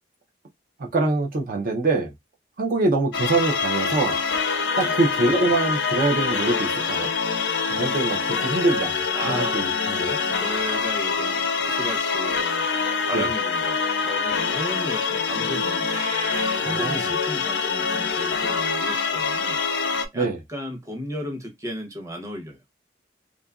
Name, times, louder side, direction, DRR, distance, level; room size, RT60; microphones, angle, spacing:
voice 1, 0.8-2.1 2.6-4.2 4.8-7.1 7.7-10.2 13.1-13.3 16.6-17.0 20.1-20.4, right 2 dB, 55° right, 0.5 m, -24 dB
sound 1, 3.1-20.1, left 5 dB, 80° left, 0.5 m, -25 dB
voice 2, 9.1-9.8 10.3-12.7 13.0-15.9 16.5-19.6 20.1-22.6, equal, 20° right, 0.7 m, -34 dB
Meow, 15.8-16.7, right 2 dB, 90° right, 1.2 m, -34 dB
2.7 x 2.4 x 2.3 m
head